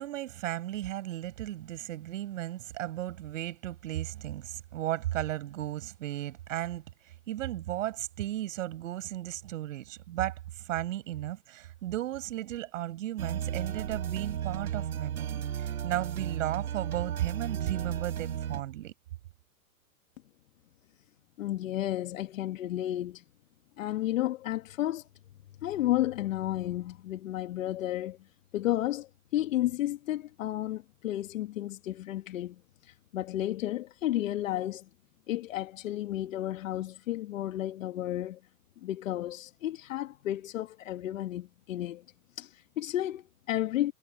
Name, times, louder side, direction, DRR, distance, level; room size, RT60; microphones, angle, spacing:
voice 1, 0.0-18.9, right 14 dB, 60° right, 5.8 m, -35 dB
sound 1, 13.2-18.6, right 9 dB, 80° right, 4.0 m, -34 dB
voice 2, 21.4-23.2 23.8-25.1 25.6-28.2 28.5-34.8 35.3-38.4 38.8-42.0 42.4-43.9, left 14 dB, 60° left, 1.8 m, -32 dB
hypercardioid pair, 140°, 44 cm